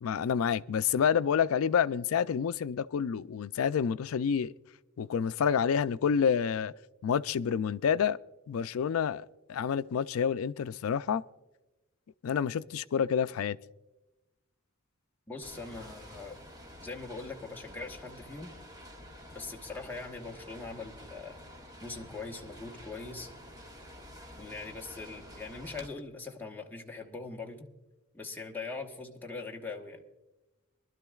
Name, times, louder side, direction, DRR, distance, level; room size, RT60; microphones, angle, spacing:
voice 1, 0.0-4.5 5.0-6.7 7.0-8.2 8.5-11.2 12.2-13.6, left 7 dB, 80° left, 0.4 m, -28 dB
voice 2, 15.3-16.4 16.8-18.5 19.3-21.4 21.8-23.3 24.4-27.7 28.1-30.0, left 3 dB, 10° left, 1.2 m, -41 dB
sound 1, 15.4-25.9, equal, 20° right, 1.7 m, -49 dB
24.0 x 12.0 x 2.3 m
head